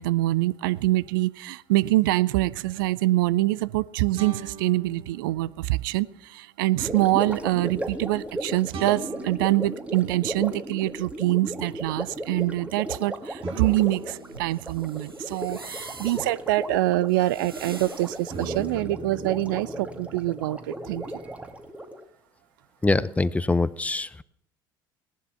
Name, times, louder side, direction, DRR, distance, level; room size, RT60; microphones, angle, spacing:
voice 1, 0.0-21.1, right 17 dB, 65° right, 19 dB, 0.5 m, -25 dB
sound 1, 2.3-2.4 4.1-5.8 8.7-11.1 13.4-17.7 18.3-21.5, right 5 dB, 50° right, 1.8 m, -43 dB
Gurgling, 6.8-22.0, right 1 dB, 10° right, 1.9 m, -36 dB
sound 2, 13.6-18.8, right 3 dB, 90° right, 1.1 m, -45 dB
voice 2, 22.8-24.2, left 2 dB, 10° left, 19 dB, 0.6 m, -24 dB
17.5 x 11.0 x 5.7 m, 0.75 s
figure-of-eight pair, 60°, 12 cm